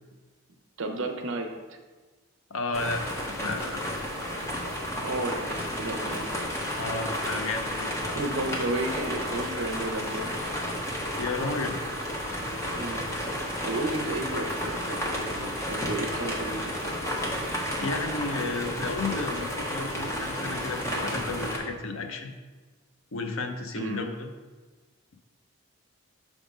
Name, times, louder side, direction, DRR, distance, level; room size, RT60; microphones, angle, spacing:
voice 1, 0.8-1.8 4.9-6.3 8.1-10.3 12.7-13.0 13.6-17.0 23.7-24.1, right 2 dB, 65° right, 5 dB, 0.7 m, -33 dB
voice 2, 2.5-4.1 6.8-7.9 11.2-11.8 17.8-22.3 23.1-24.3, left 3 dB, 70° left, 5 dB, 0.6 m, -32 dB
sound 1, 2.7-21.6, equal, 15° left, 0.8 m, -32 dB
6.1 x 3.6 x 5.1 m, 1.3 s
head